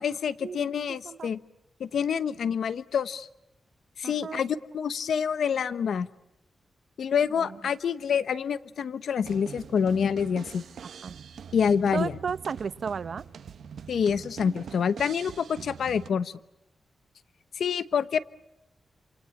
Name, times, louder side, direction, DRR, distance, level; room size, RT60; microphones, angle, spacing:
voice 1, 0.0-1.4 1.8-3.3 4.0-6.1 7.0-10.6 11.5-12.1 13.9-16.3 17.6-18.2, left 7 dB, 90° left, 14 dB, 1.0 m, -27 dB
voice 2, 4.0-4.4 7.4-7.6 10.8-11.2 11.9-13.2, right 6 dB, 65° right, 14 dB, 0.9 m, -33 dB
sound 1, 9.2-16.1, right 7 dB, 90° right, 1.1 m, -44 dB
28.5 x 28.0 x 7.2 m, 0.89 s
wide cardioid pair, 115°, 0 cm